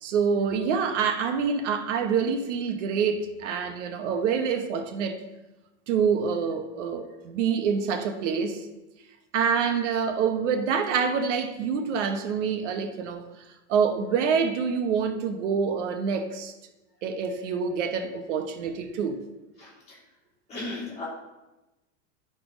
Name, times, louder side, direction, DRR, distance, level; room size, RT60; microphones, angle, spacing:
voice 1, 0.0-5.2 5.9-8.6 9.3-13.2 13.7-16.5 17.0-19.2, right 6 dB, 80° right, 6 dB, 1.1 m, -26 dB
voice 2, 19.6-20.0 20.5-21.1, left 2 dB, 20° left, -7 dB, 2.9 m, -36 dB
11.0 x 4.3 x 5.0 m, 1.0 s
supercardioid pair, 170°, 35 cm